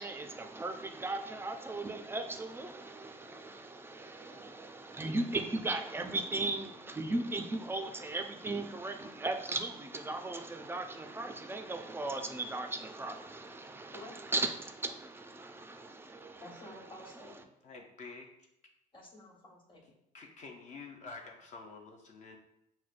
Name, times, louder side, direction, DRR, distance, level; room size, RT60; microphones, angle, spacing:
voice 1, 0.0-17.3, right 2 dB, 15° right, 5 dB, 0.3 m, -37 dB
voice 2, 16.4-17.5 18.9-20.0, left 1 dB, 30° left, -3 dB, 1.1 m, -51 dB
voice 3, 17.6-18.3 20.1-22.4, left 4 dB, 45° left, 1 dB, 0.5 m, -48 dB
6.0 x 2.1 x 2.4 m, 0.79 s
cardioid pair, 110°, 17 cm